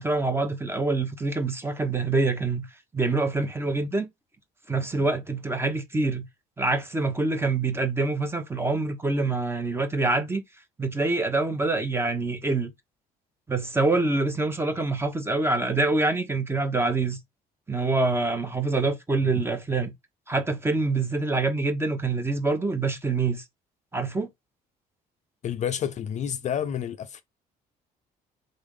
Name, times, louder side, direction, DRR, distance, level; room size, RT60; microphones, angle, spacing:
voice 1, 0.0-2.7 2.9-4.1 4.7-6.2 6.6-10.4 10.8-12.7 13.5-17.2 17.7-19.9 20.3-23.4 23.9-24.3, right 3 dB, 15° right, 1.0 m, -25 dB
voice 2, 25.4-27.2, left 9 dB, 45° left, 0.4 m, -29 dB
3.8 x 3.4 x 3.7 m
cardioid pair, 110°, 17 cm